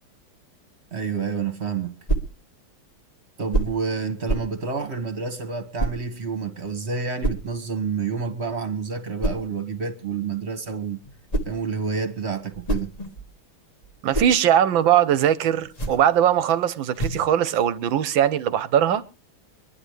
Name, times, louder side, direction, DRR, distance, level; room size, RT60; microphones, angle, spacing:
voice 1, 0.9-2.0 3.4-11.0 11.4-12.9, right 5 dB, 35° right, 1.7 m, -29 dB
sound 1, 2.1-2.4 3.5-3.8 4.3-4.6 5.8-6.0 7.2-7.5 9.2-9.5 11.0-11.6 12.4-13.4 13.8-14.4 15.6-16.1 16.9-17.3, right 2 dB, 25° left, 1.2 m, -27 dB
voice 2, 14.0-19.0, right 10 dB, 70° right, 1.5 m, -20 dB
25.0 x 11.0 x 3.2 m
omnidirectional pair, 2.3 m